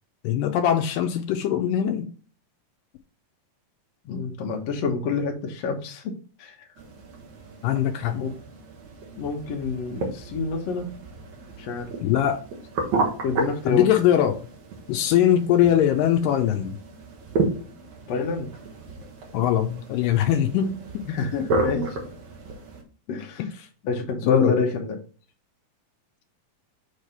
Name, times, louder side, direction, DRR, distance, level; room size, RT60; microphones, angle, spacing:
voice 1, 0.2-2.1 7.6-8.2 12.0-12.4 13.7-14.4 14.9-16.8 19.3-20.8 21.0-21.2 23.4-23.5 24.2-24.6, left 10 dB, 80° left, 2.2 m, -21 dB
voice 2, 4.1-6.1 6.4-6.5 8.1-8.4 9.2-10.9 11.6-11.9 13.2-13.9 18.1-18.5 21.1-21.9 23.1-23.4 23.8-25.0, left 4 dB, 65° left, 1.9 m, -27 dB
sound 1, 6.8-22.8, right 3 dB, 60° right, 2.5 m, -32 dB
6.6 x 3.2 x 5.5 m
omnidirectional pair, 3.9 m